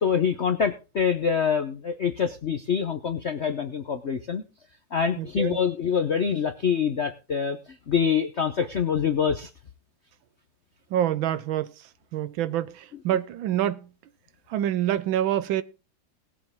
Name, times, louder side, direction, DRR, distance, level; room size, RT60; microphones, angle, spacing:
voice 1, 0.0-4.4 4.9-7.6 7.9-9.5, left 7 dB, 60° left, 0.7 m, -25 dB
voice 2, 5.2-5.6 10.9-11.7 12.1-13.9 14.5-15.6, right 11 dB, 70° right, 1.4 m, -26 dB
20.0 x 7.4 x 3.6 m
omnidirectional pair, 2.3 m